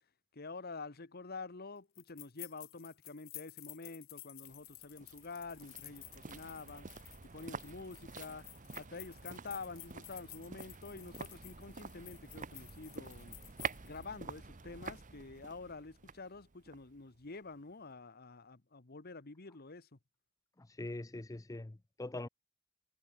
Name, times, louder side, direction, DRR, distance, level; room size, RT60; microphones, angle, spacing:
voice 1, 0.3-6.9 7.3-8.5 8.8-13.4 13.8-20.0, left 3 dB, 45° left, 1.2 m, -48 dB
sound 1, 2.0-14.1, left 20 dB, 65° left, 1.0 m, -53 dB
sound 2, 4.4-17.6 17.9-18.0, right 5 dB, 35° right, 0.9 m, -48 dB
voice 2, 20.6-22.3, left 2 dB, 15° left, 0.5 m, -43 dB
head